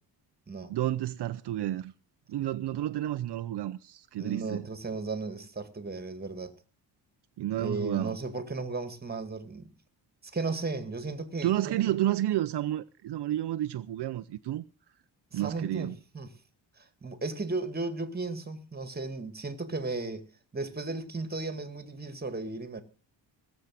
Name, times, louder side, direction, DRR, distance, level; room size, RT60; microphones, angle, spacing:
voice 1, 0.7-1.9 2.3-4.6 7.4-8.2 11.4-14.6 15.3-16.0, right 13 dB, 65° right, 0.7 m, -30 dB
voice 2, 4.2-6.5 7.6-9.7 10.3-11.8 15.3-16.3 16.8-20.3 20.5-22.8, right 3 dB, 20° right, 2.1 m, -35 dB
18.0 x 7.4 x 7.5 m
cardioid pair, 100°, 44 cm